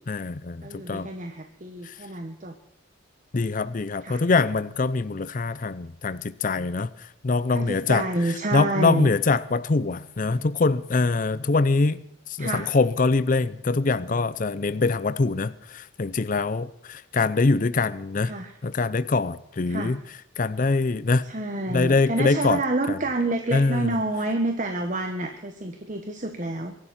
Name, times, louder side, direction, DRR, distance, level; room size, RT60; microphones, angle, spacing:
voice 1, 0.1-1.1 1.8-1.9 3.3-18.3 18.6-20.0 20.4-21.2 21.7-22.6 22.9-23.0 23.5-23.9, left 3 dB, 40° left, 16 dB, 0.5 m, -24 dB
voice 2, 0.6-2.5 4.0-4.2 7.5-9.1 12.4-12.7 18.2-18.5 19.7-19.9 21.2-26.7, right 2 dB, 40° right, 5 dB, 1.3 m, -28 dB
23.5 x 11.5 x 4.2 m, 0.76 s
head